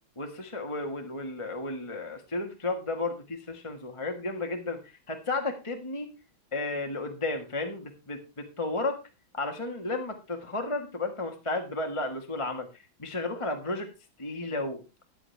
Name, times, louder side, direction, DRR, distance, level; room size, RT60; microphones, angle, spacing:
voice 1, 0.2-6.1 6.5-9.0 9.3-13.9 14.2-14.8, left 2 dB, 15° left, 4 dB, 1.3 m, -33 dB
13.5 x 9.9 x 3.3 m, 0.27 s
omnidirectional pair, 2.3 m